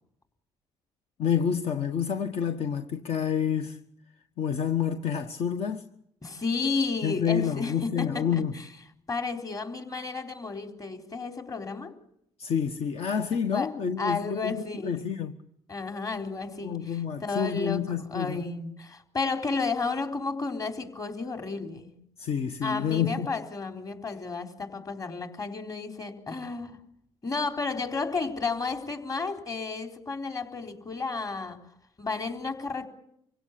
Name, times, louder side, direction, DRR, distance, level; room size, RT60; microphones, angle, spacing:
voice 1, 1.2-3.8 4.4-5.9 7.0-8.6 12.4-15.4 16.6-18.4 22.2-23.3, left 7 dB, 60° left, 1.4 m, -28 dB
voice 2, 6.2-8.4 9.1-11.9 13.5-13.7 14.0-15.1 15.7-21.9 22.6-26.8 27.2-31.6 32.0-32.9, left 4 dB, 30° left, 4.1 m, -32 dB
26.0 x 17.0 x 8.5 m
cardioid pair, 85°, 12 cm